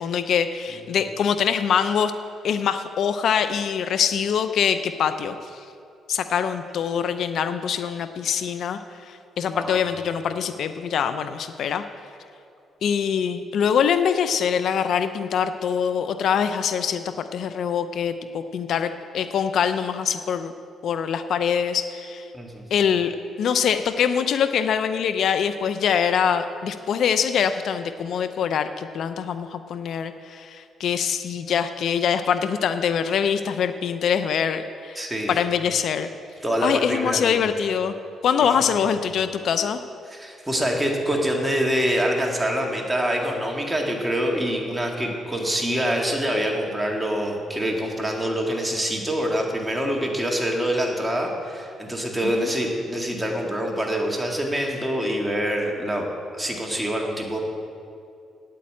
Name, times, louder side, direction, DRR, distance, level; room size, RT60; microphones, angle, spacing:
voice 1, 0.0-2.1 2.4-5.6 6.1-11.8 12.8-20.5 20.8-22.3 22.7-36.1 36.6-37.9 38.2-39.8 52.4-52.5, left 7 dB, 65° left, 10 dB, 0.5 m, -24 dB
voice 2, 22.3-22.6 35.0-35.3 36.4-37.4 38.7-38.9 40.1-57.4, equal, 10° right, 0 dB, 2.1 m, -25 dB
9.2 x 8.6 x 8.7 m, 2.5 s
cardioid pair, 90°, 0 cm